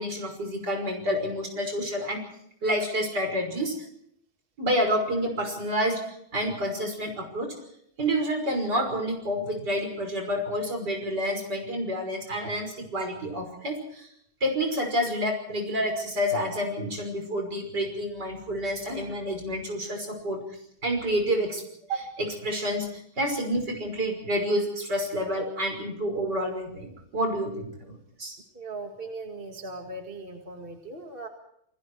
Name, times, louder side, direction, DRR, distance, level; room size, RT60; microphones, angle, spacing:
voice 1, 0.0-2.2 2.6-3.9 4.6-7.5 8.0-14.1 14.4-20.4 20.8-21.6 21.9-28.4, equal, 50° right, 4 dB, 6.4 m, -29 dB
voice 2, 28.5-31.3, right 2 dB, 25° right, 3 dB, 2.2 m, -39 dB
29.5 x 20.5 x 4.7 m, 0.72 s
omnidirectional pair, 2.3 m